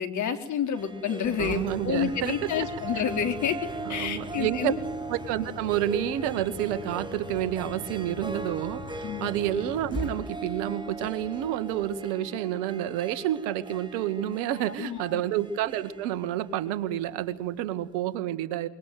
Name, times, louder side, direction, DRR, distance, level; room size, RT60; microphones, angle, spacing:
voice 1, 0.0-4.8 9.0-9.3 14.5-15.2, left 7 dB, 60° left, 8 dB, 4.2 m, -29 dB
Harp, 0.7-17.5, right 3 dB, 15° right, 4.9 m, -40 dB
Engine, 1.2-12.2, left 3 dB, 35° left, 6.7 m, -42 dB
voice 2, 1.4-2.5 3.9-4.7 5.1-18.7, right 12 dB, 80° right, 13 dB, 2.1 m, -29 dB
25.5 x 23.5 x 9.4 m, 0.81 s
hypercardioid pair, 65°, 32 cm